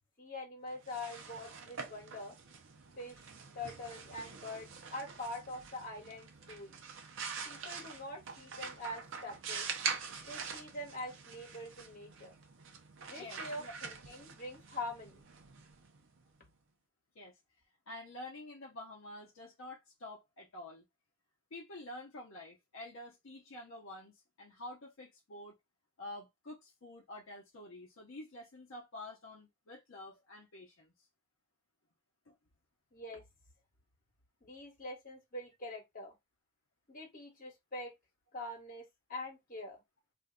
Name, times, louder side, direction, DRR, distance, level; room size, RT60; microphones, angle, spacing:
voice 1, 0.2-2.4 3.0-3.3 3.5-6.8 7.4-9.7 10.2-12.3 13.1-15.2 32.9-33.2 34.4-36.1 36.9-37.9 38.3-39.8, left 1 dB, 40° left, 1.2 m, -44 dB
sound 1, 0.7-16.4, right 6 dB, 60° right, 0.6 m, -45 dB
voice 2, 13.1-13.8 17.2-17.4 17.9-20.8 21.5-25.5 26.0-30.9 32.3-32.4, left 1 dB, 65° left, 0.7 m, -49 dB
2.6 x 2.2 x 3.5 m
head